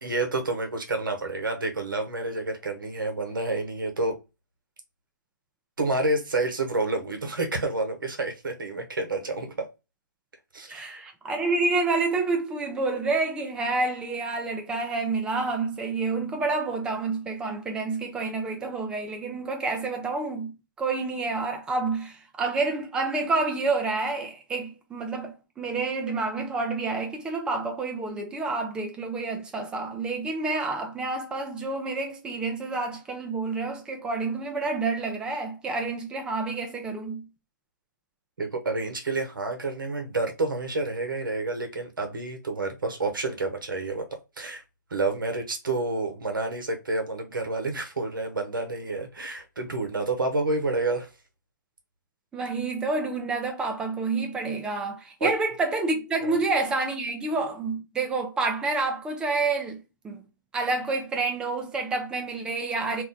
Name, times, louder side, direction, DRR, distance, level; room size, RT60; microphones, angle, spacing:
voice 1, 0.0-4.1 5.8-9.7 10.5-11.1 38.4-44.1 44.4-44.6 44.9-51.1 55.2-55.3 56.2-56.3, right 2 dB, 80° right, 0.9 m, -29 dB
voice 2, 10.7-37.3 52.3-60.2 60.5-63.0, right 3 dB, 10° right, 0.4 m, -28 dB
2.5 x 2.1 x 3.8 m
hypercardioid pair, 140°, 11 cm